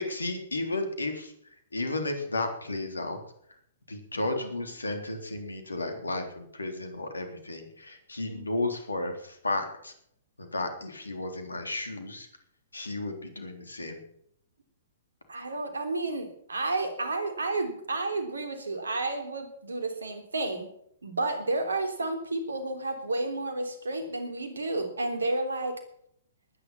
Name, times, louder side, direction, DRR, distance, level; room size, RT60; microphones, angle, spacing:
voice 1, 0.0-1.3 1.7-3.2 3.9-9.9 10.4-12.3 12.7-14.0, left 2 dB, 80° left, 6 dB, 3.6 m, -33 dB
voice 2, 8.3-8.6 15.3-20.7 21.0-25.8, right 2 dB, 75° right, 7 dB, 3.4 m, -31 dB
20.5 x 10.0 x 5.8 m, 0.69 s
figure-of-eight pair, 115°, 0 cm